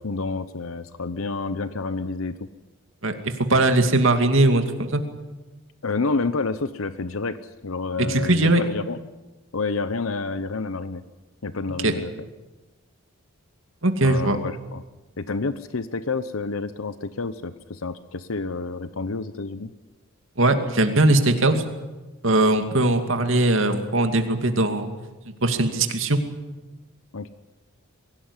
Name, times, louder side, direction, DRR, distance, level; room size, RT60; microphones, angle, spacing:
voice 1, 0.0-2.3 5.8-9.0 9.5-11.0 11.4-12.1 14.0-14.8 15.2-19.7 27.1-27.3, left 3 dB, 75° left, 13 dB, 0.9 m, -29 dB
voice 2, 3.0-5.0 8.0-8.6 11.8-11.9 13.8-14.4 20.4-21.6 22.2-24.9 25.4-26.2, right 2 dB, 65° right, 6 dB, 2.5 m, -20 dB
23.0 x 17.0 x 9.9 m, 1.1 s
head